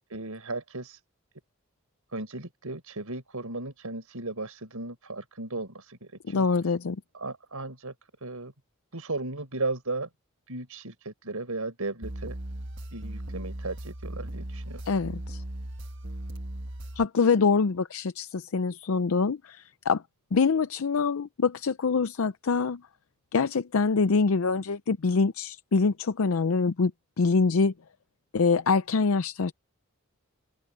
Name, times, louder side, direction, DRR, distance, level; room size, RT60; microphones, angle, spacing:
voice 1, 0.1-1.0 2.1-6.5 7.1-7.9 8.2-8.5 8.9-10.1 10.5-12.4 12.9-14.8, right 2 dB, 90° right, 5.0 m, -35 dB
voice 2, 6.3-7.0 14.9-15.4 17.0-20.0 20.3-22.8 23.3-26.9 27.2-27.7 28.3-29.5, left 4 dB, 70° left, 0.5 m, -25 dB
sound 1, 12.0-17.0, right 1 dB, 55° right, 1.6 m, -37 dB
open air
head